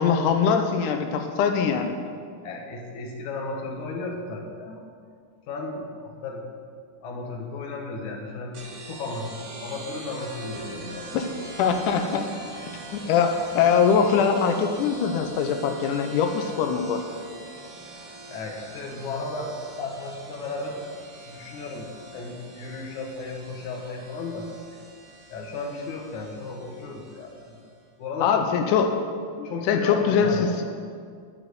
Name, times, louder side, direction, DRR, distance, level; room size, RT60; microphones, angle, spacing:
voice 1, 0.0-1.9 11.1-11.3 11.6-12.3 12.9-17.0 28.2-29.0 29.4-30.6, left 6 dB, 85° left, 5 dB, 1.8 m, -22 dB
voice 2, 2.4-4.8 5.5-6.5 7.0-11.1 12.5-12.6 18.3-20.9 21.3-24.5 25.3-27.6 28.0-28.6 29.4-30.6, left 3 dB, 60° left, 0 dB, 2.4 m, -34 dB
sound 1, 8.5-27.7, right 2 dB, 50° right, 1.9 m, -43 dB
11.0 x 6.1 x 8.0 m, 2.1 s
omnidirectional pair, 4.5 m